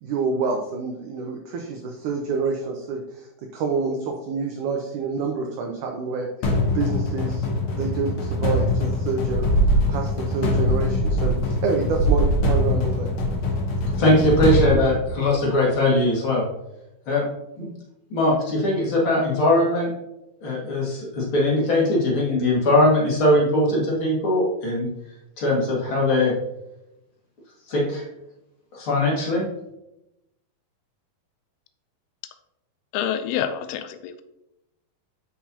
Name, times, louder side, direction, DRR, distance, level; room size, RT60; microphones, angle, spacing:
voice 1, 0.0-3.3 3.5-6.3 6.7-13.1, right 4 dB, 80° right, 2 dB, 1.8 m, -28 dB
sound 1, 6.4-15.6, left 2 dB, 60° left, 2.2 m, -25 dB
sound 2, 8.6-8.9 9.2-10.1 10.5-11.6 11.9-15.0, right 2 dB, 60° right, 3.3 m, -24 dB
voice 2, 14.0-16.4 17.1-17.3 17.6-17.7 18.1-19.9 20.4-24.9 25.4-26.3 27.7-28.0 28.7-29.5, left 1 dB, 40° left, -4 dB, 2.3 m, -20 dB
voice 3, 32.9-34.2, left 9 dB, 85° left, 10 dB, 2.6 m, -27 dB
9.3 x 5.6 x 2.8 m, 0.90 s
omnidirectional pair, 4.4 m